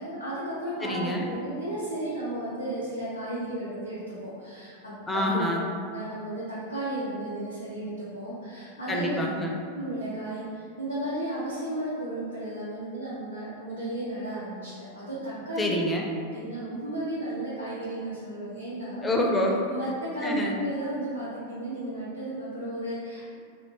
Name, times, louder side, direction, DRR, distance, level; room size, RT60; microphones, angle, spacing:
voice 1, 0.0-5.4 5.8-9.2 9.7-15.7 16.3-19.1 19.7-23.4, right 1 dB, 90° right, -12 dB, 0.6 m, -34 dB
voice 2, 0.8-1.3 5.1-5.7 8.9-9.5 15.6-16.2 18.5-18.6 19.0-19.9 20.2-20.5, left 1 dB, 10° left, -1 dB, 0.4 m, -27 dB
2.5 x 2.1 x 3.1 m, 2.3 s
figure-of-eight pair, 90°, 0 cm